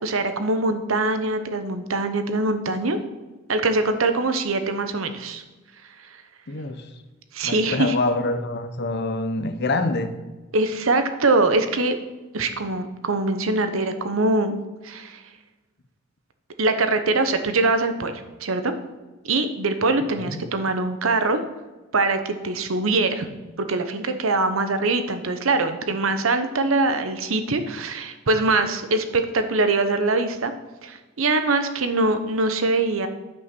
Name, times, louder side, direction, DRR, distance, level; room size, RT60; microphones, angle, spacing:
voice 1, 0.0-3.0 3.5-5.4 7.3-8.0 10.5-12.0 12.3-14.6 14.8-15.2 16.6-18.8 19.2-21.4 21.9-23.3 23.6-30.5 30.8-33.1, right 3 dB, 90° right, 8 dB, 0.9 m, -23 dB
voice 2, 6.5-6.9 7.4-10.1 20.0-20.4, left 2 dB, 55° left, 9 dB, 0.8 m, -26 dB
9.6 x 5.6 x 6.0 m, 1.2 s
head